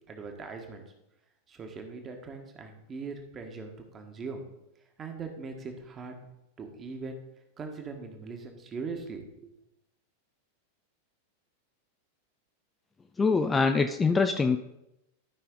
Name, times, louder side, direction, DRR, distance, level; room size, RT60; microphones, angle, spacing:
voice 1, 0.1-0.8 1.5-4.5 5.0-6.1 6.6-7.2 7.6-9.5, right 4 dB, 25° right, 4 dB, 1.6 m, -40 dB
voice 2, 13.2-14.6, left 4 dB, 15° left, 7 dB, 0.5 m, -24 dB
13.0 x 5.6 x 4.0 m, 0.86 s
figure-of-eight pair, 90°, 0 cm